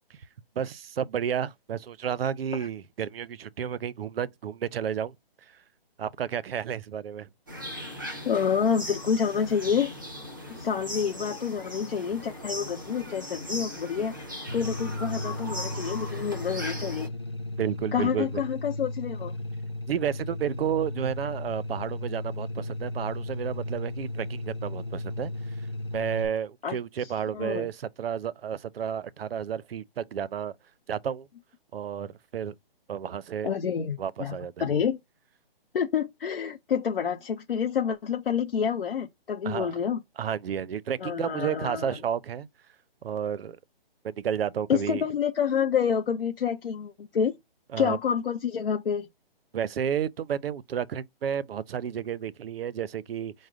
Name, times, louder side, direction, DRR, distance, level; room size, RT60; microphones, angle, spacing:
voice 1, 0.6-5.1 6.0-7.3 17.5-18.4 19.9-25.3 25.9-30.5 30.9-31.3 31.7-32.5 32.9-33.5 34.0-34.5 39.4-39.7 40.2-42.5 43.0-43.6 44.0-45.0 47.7-48.0 49.5-53.3, right 8 dB, 75° right, 0.5 m, -31 dB
sound 1, 7.5-17.1, equal, 20° right, 0.6 m, -38 dB
voice 2, 8.2-9.9 10.5-14.1 14.5-17.1 17.9-19.3 26.6-27.7 33.4-35.0 35.7-40.0 41.0-42.0 44.7-47.4 47.8-49.1, left 7 dB, 65° left, 0.6 m, -28 dB
sound 2, 14.5-26.3, left 2 dB, 30° left, 0.5 m, -35 dB
4.8 x 2.1 x 3.7 m
hypercardioid pair, 175°, 30 cm